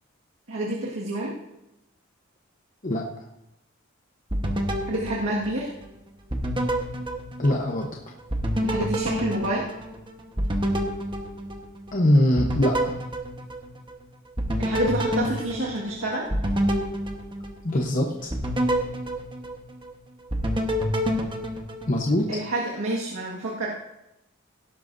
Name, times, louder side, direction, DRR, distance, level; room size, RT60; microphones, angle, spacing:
voice 1, 0.5-1.4 4.9-5.7 8.6-9.7 14.6-16.3 22.3-23.7, right 1 dB, 85° right, -4 dB, 1.8 m, -28 dB
sound 1, 4.3-5.9 6.3-7.9 8.3-12.0 12.4-14.0 14.4-17.8 18.3-19.9 20.3-22.3, equal, 25° right, 1.2 m, -28 dB
voice 2, 7.4-8.0 11.9-13.0 17.6-18.3 21.9-22.3, left 1 dB, 40° left, 0 dB, 1.0 m, -22 dB
17.0 x 11.0 x 2.7 m, 0.91 s
head